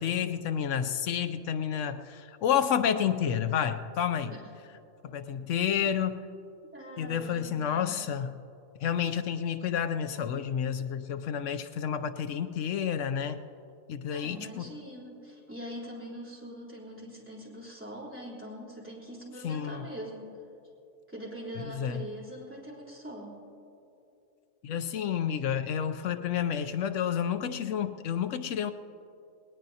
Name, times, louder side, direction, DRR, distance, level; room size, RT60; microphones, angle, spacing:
voice 1, 0.0-4.3 5.0-6.3 7.0-8.3 8.8-13.4 13.9-14.7 19.4-19.9 21.6-22.0 24.6-28.7, left 8 dB, 75° left, 10 dB, 0.9 m, -30 dB
voice 2, 6.7-8.0 14.1-20.4 21.1-23.4, equal, 10° right, -6 dB, 3.4 m, -43 dB
20.0 x 19.5 x 2.8 m, 2.7 s
omnidirectional pair, 1.3 m